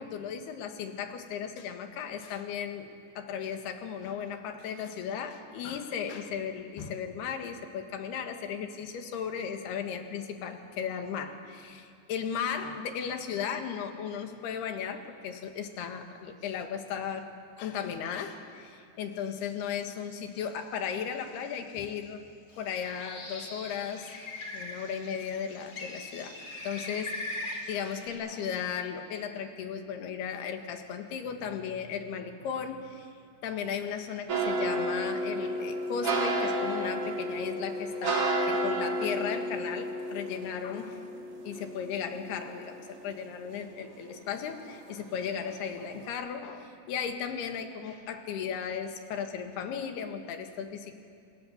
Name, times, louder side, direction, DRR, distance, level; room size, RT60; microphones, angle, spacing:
voice 1, 0.0-22.2 22.6-26.4 26.6-33.1 33.4-41.0 41.5-51.0, left 7 dB, 70° left, 6 dB, 3.6 m, -36 dB
Bird, 22.5-28.1, left 2 dB, 25° left, 3.5 m, -41 dB
sound 1, 34.3-43.5 43.9-44.9 45.3-45.6 45.9-46.1, right 1 dB, 40° right, 2.5 m, -32 dB
29.5 x 26.5 x 7.2 m, 2.4 s
omnidirectional pair, 5.0 m